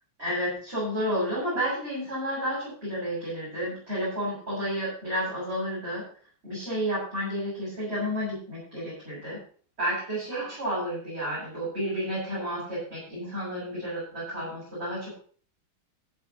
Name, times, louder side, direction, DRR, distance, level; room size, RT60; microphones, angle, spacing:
voice 1, 0.2-6.0 6.4-9.4 9.8-15.1, equal, 30° right, -9 dB, 8.4 m, -31 dB
14.5 x 14.0 x 3.2 m, 0.43 s
omnidirectional pair, 2.3 m